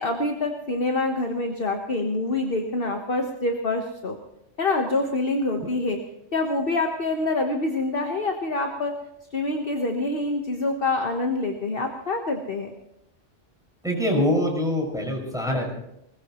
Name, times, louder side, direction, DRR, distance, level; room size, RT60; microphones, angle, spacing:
voice 1, 0.0-4.2 4.6-6.0 6.3-8.9 9.3-12.7, left 2 dB, 50° left, 3 dB, 1.5 m, -26 dB
voice 2, 13.8-15.7, left 1 dB, 5° right, -1 dB, 5.7 m, -24 dB
21.0 x 20.5 x 3.1 m, 0.83 s
omnidirectional pair, 1.2 m